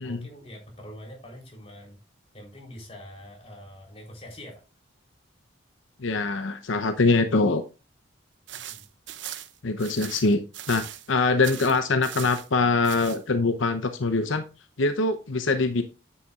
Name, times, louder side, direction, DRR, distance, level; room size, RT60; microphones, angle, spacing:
voice 1, 0.0-2.0 2.3-4.6 8.7-8.9, equal, 30° left, 0 dB, 3.8 m, -44 dB
voice 2, 6.0-7.6 9.6-10.4 10.7-14.4 14.8-15.8, left 3 dB, 85° left, 8 dB, 0.8 m, -23 dB
sound 1, 8.5-11.1 11.4-12.5 12.8-13.2, right 11 dB, 75° right, 0.8 m, -39 dB
9.5 x 8.5 x 2.4 m, 0.30 s
head